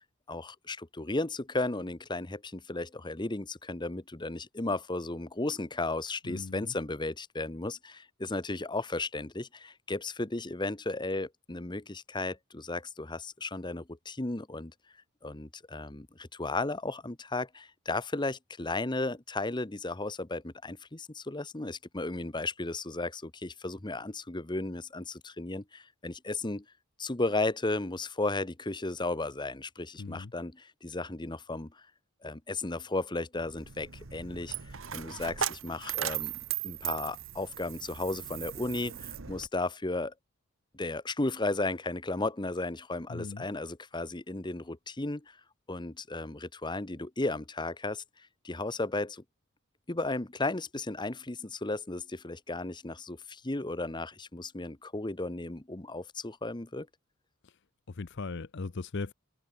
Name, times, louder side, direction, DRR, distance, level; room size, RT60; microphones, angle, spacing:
voice 1, 0.3-14.7 15.2-26.6 27.0-31.8 32.2-36.3 36.6-40.1 40.7-45.4 45.7-48.0 48.4-49.2 49.9-56.9, left 2 dB, 20° left, 1.1 m, -34 dB
voice 2, 6.2-6.7 30.0-30.3 43.1-43.5 57.9-59.1, left 3 dB, 55° left, 0.7 m, -38 dB
Coin (dropping), 33.4-39.5, right 10 dB, 65° right, 1.2 m, -37 dB
head